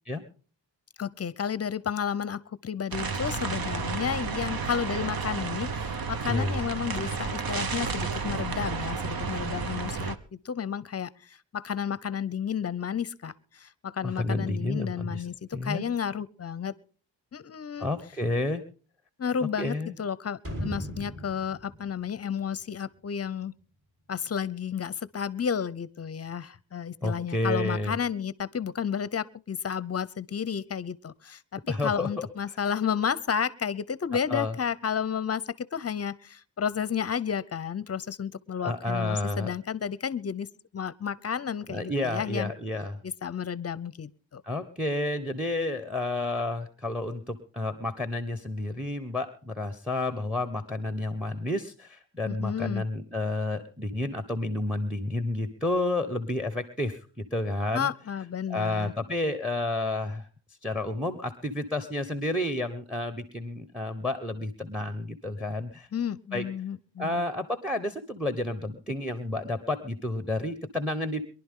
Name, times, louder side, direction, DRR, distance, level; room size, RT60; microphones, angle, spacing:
voice 1, 1.0-16.7 17.3-17.9 19.2-23.6 24.1-42.5 43.0-44.4 52.2-52.8 57.7-58.9 65.9-67.2, left 7 dB, 35° left, 19 dB, 0.7 m, -32 dB
sound 1, 2.9-10.2, right 5 dB, 55° right, 1.1 m, -32 dB
voice 2, 6.3-6.6 14.0-15.2 15.5-15.8 17.8-18.6 19.4-19.9 27.0-27.9 31.7-32.3 34.3-34.5 38.6-39.5 41.7-43.0 44.4-57.9 58.5-60.3 60.6-65.9 66.3-66.4 67.0-71.2, left 2 dB, ahead, 12 dB, 1.1 m, -30 dB
sound 2, 20.4-23.3 23.6-23.7, equal, 30° right, 4.1 m, -38 dB
23.5 x 11.5 x 3.7 m, 0.39 s
cardioid pair, 95°, 44 cm